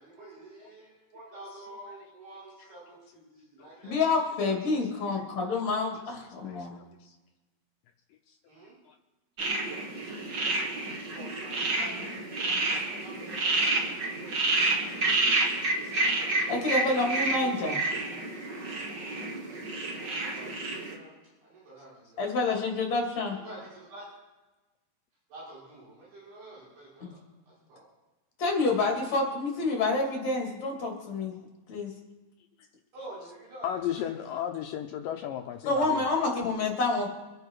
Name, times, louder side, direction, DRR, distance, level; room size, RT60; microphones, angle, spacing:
voice 1, 0.0-3.9 8.5-8.8 11.1-15.1 15.9-16.3 20.0-20.5 20.9-22.4 23.3-24.0 25.3-27.2 27.6-27.9 32.9-34.4, right 1 dB, 70° right, -8 dB, 8.2 m, -49 dB
voice 2, 3.8-6.8 16.5-17.8 22.2-23.4 27.0-27.1 28.4-31.3 31.7-31.9 35.7-37.1, left 3 dB, 45° left, 0 dB, 3.7 m, -28 dB
voice 3, 6.5-7.2 8.9-9.0 9.9-10.0 10.5-10.7 15.0-15.1 15.4-15.5 15.8-15.9 33.6-36.0, left 10 dB, 80° left, 5 dB, 2.0 m, -35 dB
sound 1, 9.4-20.9, right 2 dB, 45° right, 1.4 m, -29 dB
26.0 x 9.8 x 4.8 m, 1.1 s
omnidirectional pair, 4.8 m